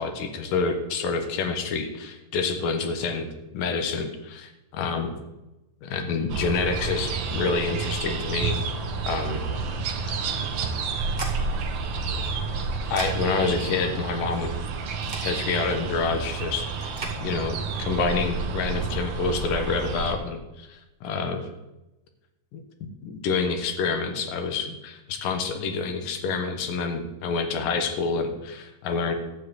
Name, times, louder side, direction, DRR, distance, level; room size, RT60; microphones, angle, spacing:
voice 1, 0.0-3.3 3.5-5.1 5.8-8.6 9.1-9.5 11.0-11.1 12.1-12.2 12.6-12.7 12.9-14.5 15.2-21.5 22.5-22.6 23.0-29.1, left 4 dB, 70° left, 6 dB, 2.7 m, -28 dB
sound 1, 6.3-20.1, right 4 dB, 80° right, 1.4 m, -30 dB
sound 2, 10.6-17.1, right 3 dB, 20° right, 1.2 m, -41 dB
12.5 x 4.8 x 7.9 m, 1.0 s
omnidirectional pair, 4.2 m